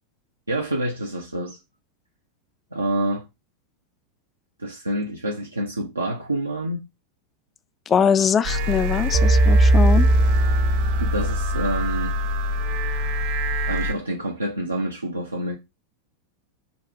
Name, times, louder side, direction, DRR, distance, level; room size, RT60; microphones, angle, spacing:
voice 1, 0.5-1.6 2.7-3.3 4.6-6.8 11.0-12.2 13.7-15.6, right 1 dB, 80° right, 0.6 m, -27 dB
voice 2, 7.9-10.1, left 7 dB, 25° left, 0.3 m, -21 dB
sound 1, 8.4-13.9, right 1 dB, 50° right, 0.8 m, -20 dB
4.9 x 2.4 x 3.5 m
figure-of-eight pair, 90°, 0 cm